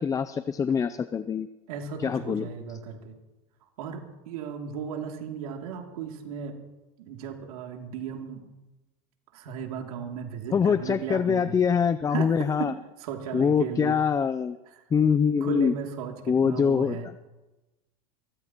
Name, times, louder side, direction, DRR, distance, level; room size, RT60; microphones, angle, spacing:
voice 1, 0.0-1.5 2.0-2.5 10.5-12.7 13.3-14.6 14.9-15.7 16.3-17.0, left 6 dB, 20° left, 13 dB, 0.4 m, -24 dB
voice 2, 1.7-3.2 3.8-6.6 7.0-8.4 9.3-11.6 12.1-12.7 13.0-14.0 15.4-17.1, right 7 dB, 90° right, 2 dB, 2.7 m, -35 dB
23.5 x 17.5 x 3.0 m, 1.1 s
supercardioid pair, 125°, 18 cm